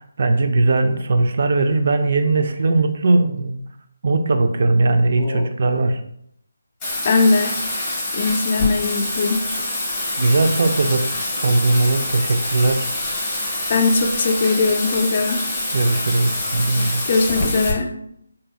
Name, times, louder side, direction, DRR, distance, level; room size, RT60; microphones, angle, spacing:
voice 1, 0.0-3.6 4.0-6.0 10.2-11.1 11.4-12.9 15.7-17.0, right 2 dB, 45° right, 0.4 m, -19 dB
voice 2, 5.2-5.5 7.0-9.5 13.7-15.5 16.8-17.9, left 3 dB, 35° left, 0.3 m, -20 dB
Bathtub (filling or washing), 6.8-17.7, left 2 dB, 10° left, 0.9 m, -26 dB
4.1 x 2.6 x 2.3 m
hypercardioid pair, 170°, 0 cm